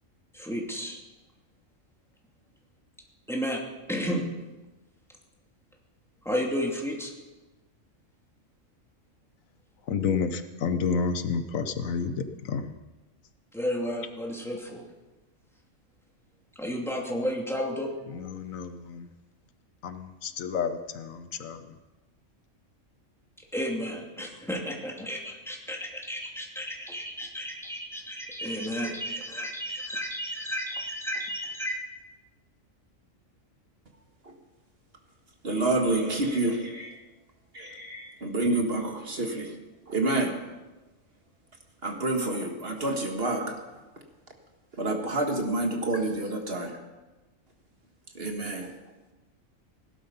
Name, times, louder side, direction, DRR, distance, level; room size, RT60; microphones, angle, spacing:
voice 1, 0.3-1.0 3.3-3.6 3.9-4.2 6.2-7.1 13.5-14.8 16.6-17.9 23.5-31.8, equal, ahead, -1 dB, 2.5 m, -32 dB
voice 2, 9.9-12.7 18.1-19.1 19.8-21.8, left 5 dB, 80° left, 9 dB, 1.3 m, -30 dB
voice 3, 35.4-37.0 37.5-39.5 39.9-40.4 41.8-43.6 44.8-46.8 48.2-48.7, right 2 dB, 45° right, 3 dB, 1.9 m, -28 dB
17.0 x 12.0 x 5.6 m, 1.1 s
omnidirectional pair, 1.4 m